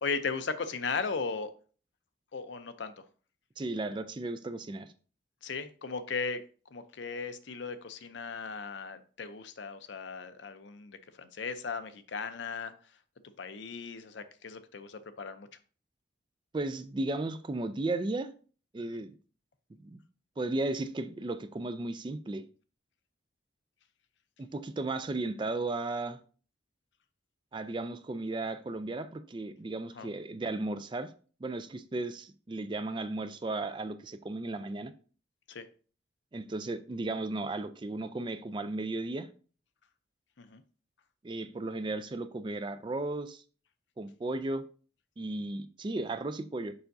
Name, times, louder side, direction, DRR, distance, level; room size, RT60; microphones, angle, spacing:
voice 1, 0.0-1.5 2.3-2.9 5.4-6.4 6.7-12.7 13.4-15.5 18.9-19.0 30.0-30.1 35.5-35.7 40.4-40.6, left 5 dB, 65° left, 0.6 m, -37 dB
voice 2, 3.6-4.9 16.5-18.3 18.7-19.1 19.8-20.0 20.4-22.4 24.4-26.2 27.5-31.1 31.4-34.9 36.3-39.3 41.2-43.4 44.0-44.6 45.2-46.7, right 2 dB, 25° right, 0.3 m, -35 dB
6.8 x 5.6 x 2.6 m
head